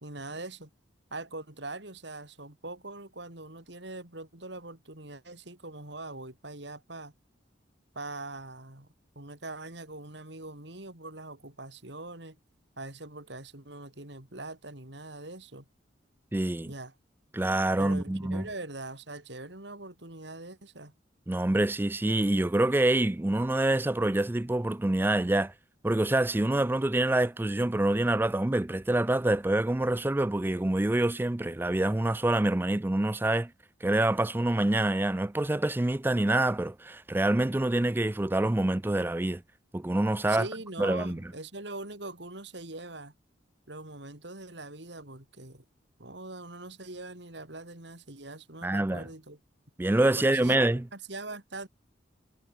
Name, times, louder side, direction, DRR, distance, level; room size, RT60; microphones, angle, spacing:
voice 1, 0.0-0.7 1.1-7.1 7.9-8.9 9.2-12.4 12.8-15.6 16.6-16.9 17.8-20.9 40.3-43.1 43.7-45.6 46.0-49.4 50.1-50.6 50.9-51.7, right 2 dB, 60° right, 3.8 m, -42 dB
voice 2, 16.3-16.7 17.3-18.5 21.3-25.5 25.8-33.5 33.8-39.4 39.7-40.5 40.8-41.2 48.6-49.1 49.8-50.8, right 1 dB, 10° right, 0.4 m, -26 dB
head